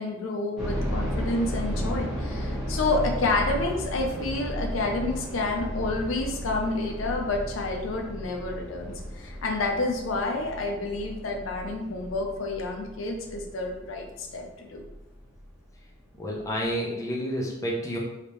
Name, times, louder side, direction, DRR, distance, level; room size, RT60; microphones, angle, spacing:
voice 1, 0.0-14.8, left 2 dB, 75° left, 2 dB, 0.5 m, -29 dB
sound 1, 0.6-15.4 15.7-15.8 16.4-16.7, equal, ahead, 1.0 m, -34 dB
voice 2, 16.2-18.0, equal, 15° left, -3 dB, 0.6 m, -29 dB
3.3 x 2.8 x 3.2 m, 0.97 s
head